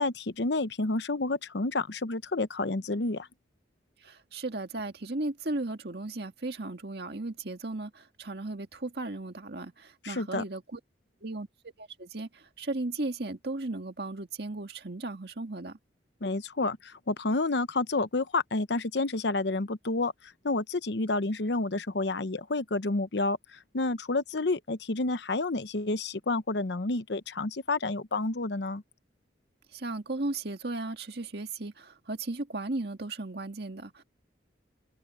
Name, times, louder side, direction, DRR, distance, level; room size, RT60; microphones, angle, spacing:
voice 1, 0.0-3.3 10.0-10.4 16.2-20.1 20.4-28.8, left 2 dB, 70° left, 0.9 m, -29 dB
voice 2, 4.0-10.8 11.2-11.5 11.8-15.8 29.7-34.0, right 2 dB, 60° right, 1.9 m, -36 dB
head